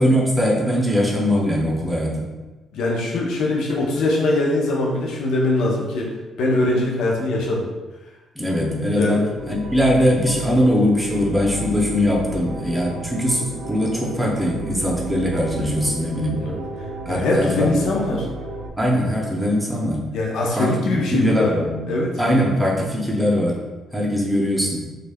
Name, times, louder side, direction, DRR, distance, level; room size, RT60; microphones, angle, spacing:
voice 1, 0.0-2.2 8.4-9.2 9.5-16.4 17.1-17.9 18.8-20.0 20.5-21.7 22.2-23.6 23.9-24.9, equal, 5° right, -3 dB, 0.6 m, -21 dB
voice 2, 2.7-7.7 8.9-9.3 16.4-16.6 17.1-18.3 20.1-21.6 21.9-22.1, left 2 dB, 80° left, -2 dB, 0.5 m, -22 dB
sound 1, 9.3-18.7, right 1 dB, 90° right, 0.4 m, -33 dB
2.3 x 2.0 x 3.4 m, 1.2 s
cardioid pair, 90°, 0 cm